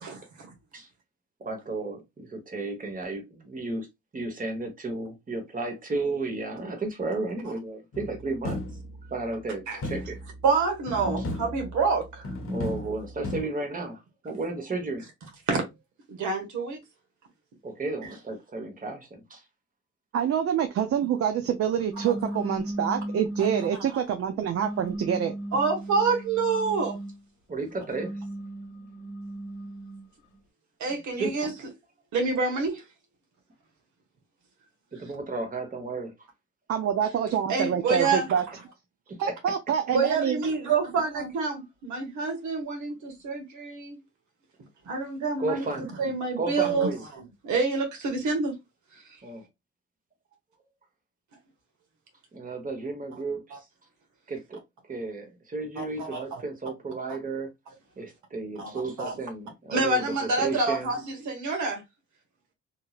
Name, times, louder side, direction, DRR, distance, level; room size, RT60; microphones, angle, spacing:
voice 1, 0.0-0.5 9.7-9.8 10.4-12.3 15.5-15.6 16.1-16.8 22.0-22.2 23.4-23.5 25.5-27.0 30.8-31.5 32.1-32.8 37.5-38.3 39.9-44.0 44.8-48.5 53.5-53.6 55.8-56.2 58.6-58.7 59.0-59.2 59.7-61.8, right 4 dB, 75° right, 1.1 m, -27 dB
voice 2, 1.4-3.9 4.1-8.6 9.1-10.2 12.5-15.0 17.6-19.4 27.5-28.2 30.9-31.3 35.0-36.1 39.1-39.3 45.4-45.9 46.4-47.0 49.2-49.4 52.3-53.6 54.3-54.6 54.9-57.5 58.0-60.9, right 3 dB, 25° right, 1.1 m, -33 dB
sound 1, 7.9-9.1 9.8-10.5 10.9-12.0 12.2-13.4, left 2 dB, 45° left, 0.8 m, -34 dB
voice 3, 20.1-25.3 36.7-38.4 39.2-40.4, right 8 dB, 50° right, 0.5 m, -26 dB
sound 2, 21.8-23.9 24.5-27.2 27.8-30.1, right 1 dB, 90° left, 0.8 m, -36 dB
2.9 x 2.7 x 2.3 m
cardioid pair, 90°, 30 cm